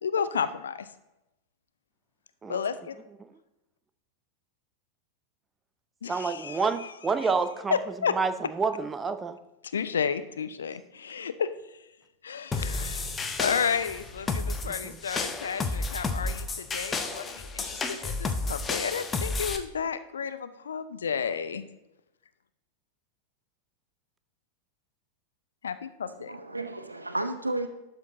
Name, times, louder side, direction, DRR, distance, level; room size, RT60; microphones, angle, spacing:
voice 1, 0.0-0.9 2.5-3.0 6.0-6.9 7.7-8.1 9.7-11.5 12.2-13.1 13.4-21.6 25.6-26.3, left 6 dB, 70° left, 13 dB, 0.4 m, -32 dB
voice 2, 6.1-7.7 8.2-8.3 8.6-9.4 14.6-15.0, right 4 dB, 15° right, 11 dB, 0.5 m, -28 dB
sound 1, 12.5-19.6, left 3 dB, 20° left, 0.7 m, -32 dB
voice 3, 26.0-27.7, right 2 dB, 85° right, 8 dB, 0.5 m, -33 dB
11.5 x 4.5 x 3.9 m, 0.92 s
figure-of-eight pair, 90°, 0 cm